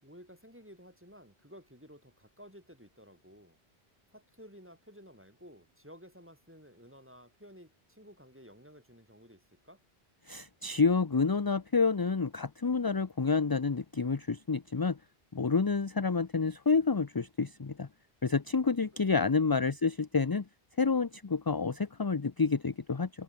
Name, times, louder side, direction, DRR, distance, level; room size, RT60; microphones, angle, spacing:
voice 1, 0.0-3.6 4.1-9.8 18.9-19.0 19.4-19.7, equal, 10° right, 7.5 m, -54 dB
voice 2, 10.3-15.0 15.3-17.9 18.2-20.4 20.8-23.1, left 4 dB, 25° left, 0.6 m, -29 dB
omnidirectional pair, 1.1 m